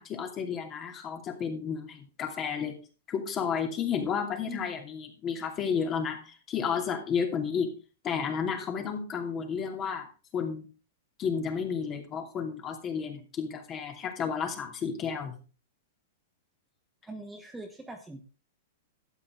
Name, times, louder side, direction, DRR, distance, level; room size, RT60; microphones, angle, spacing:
voice 1, 0.0-2.7 3.1-7.7 8.0-10.1 10.3-10.7 11.2-15.4, left 6 dB, 30° left, 3 dB, 2.6 m, -32 dB
voice 2, 17.0-18.2, right 2 dB, 10° right, 3 dB, 1.2 m, -42 dB
12.0 x 8.6 x 3.7 m, 0.36 s
hypercardioid pair, 130°, 0 cm